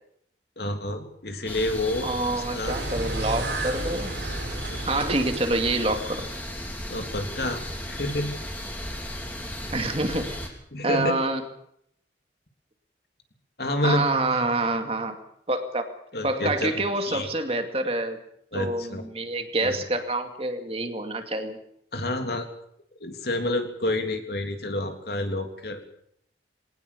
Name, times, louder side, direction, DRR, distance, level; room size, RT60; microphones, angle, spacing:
voice 1, 0.6-2.8 4.7-4.8 6.9-8.3 10.7-11.2 13.6-14.4 16.1-17.3 18.5-19.1 19.6-19.7 21.9-22.5 23.0-25.8, left 1 dB, 60° left, 5 dB, 3.3 m, -29 dB
sound 1, 1.4-10.5, left 1 dB, 10° left, 3.8 m, -35 dB
voice 2, 2.0-4.1 4.8-6.3 9.7-10.4 10.8-11.4 13.8-15.2 15.5-15.9 16.2-18.2 18.5-21.6, right 2 dB, 30° right, 6 dB, 2.4 m, -27 dB
sound 2, 2.7-6.5, right 2 dB, 75° right, 6.9 m, -33 dB
22.0 x 18.5 x 6.9 m, 0.70 s
head